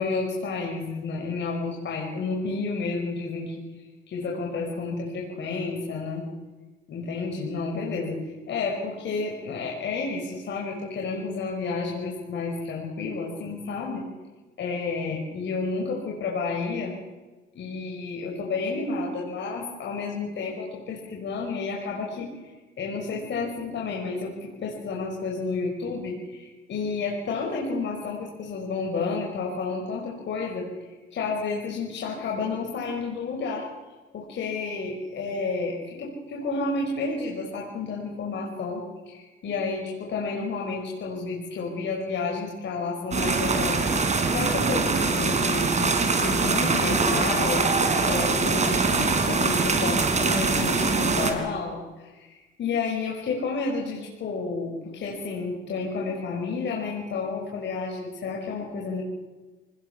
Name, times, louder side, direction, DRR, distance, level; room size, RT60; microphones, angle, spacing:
voice 1, 0.0-3.5 4.1-6.3 6.9-8.2 8.5-14.1 14.6-16.9 17.5-22.3 22.8-33.7 34.1-43.8 44.3-47.7 48.0-59.0, left 4 dB, 65° left, -1 dB, 5.8 m, -31 dB
sound 1, 43.1-51.3, right 4 dB, 35° right, 4.3 m, -23 dB
26.0 x 20.0 x 7.2 m, 1.2 s
cardioid pair, 90°, 20 cm